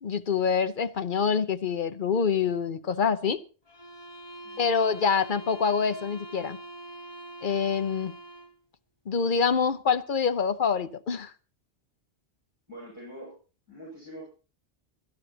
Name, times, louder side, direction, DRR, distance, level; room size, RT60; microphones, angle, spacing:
voice 1, 0.0-3.4 4.6-6.6 7.4-8.1 9.1-11.3, left 6 dB, 50° left, 0.9 m, -26 dB
sound 1, 3.7-8.6, right 1 dB, 25° left, 1.2 m, -44 dB
voice 2, 12.7-13.4 13.7-14.2, right 1 dB, 15° right, 6.8 m, -44 dB
24.0 x 12.0 x 2.8 m
omnidirectional pair, 1.1 m